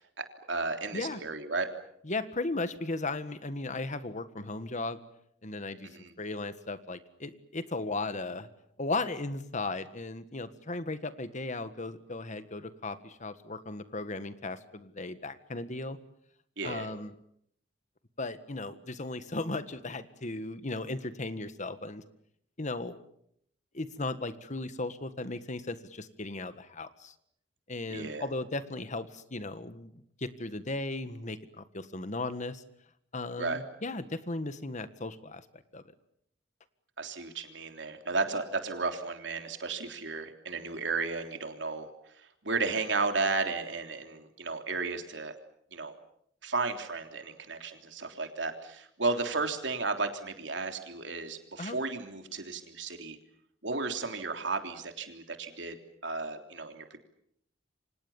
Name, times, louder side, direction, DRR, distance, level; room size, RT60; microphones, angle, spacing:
voice 1, 0.2-1.7 5.8-6.2 16.6-16.9 27.9-28.2 33.4-33.6 37.0-41.9 42.2-45.3 45.7-45.9 46.4-53.2 53.6-55.8 56.0-57.0, right 3 dB, 75° right, 6 dB, 3.4 m, -34 dB
voice 2, 2.0-5.0 5.4-8.5 8.8-16.0 16.6-17.1 18.2-22.0 22.6-23.0 23.7-27.1 27.7-29.9 30.2-32.6 33.1-35.8 51.6-51.8, left 2 dB, 40° left, 12 dB, 1.7 m, -36 dB
28.5 x 25.5 x 7.2 m, 0.71 s
head